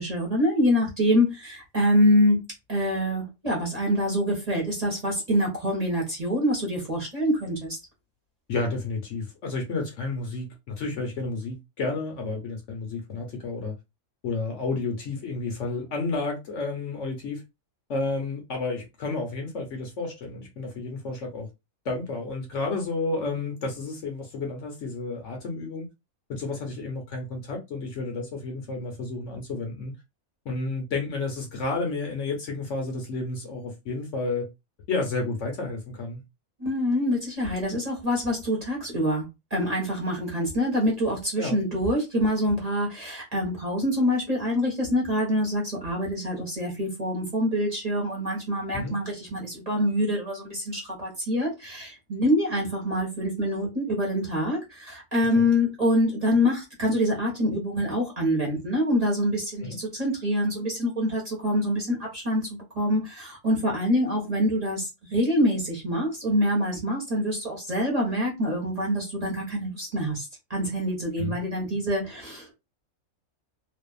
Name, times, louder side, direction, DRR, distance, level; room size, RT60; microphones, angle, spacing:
voice 1, 0.0-7.8 36.6-39.3 39.5-72.5, equal, 30° right, 1.1 m, -25 dB
voice 2, 8.5-13.7 14.2-17.4 17.9-21.5 21.8-25.9 26.3-29.9 30.5-34.5 34.9-36.2 41.4-41.6 48.7-49.0 55.3-55.5 59.6-59.8 71.2-71.4, left 3 dB, 60° left, 1.0 m, -31 dB
2.6 x 2.4 x 2.3 m
omnidirectional pair, 1.5 m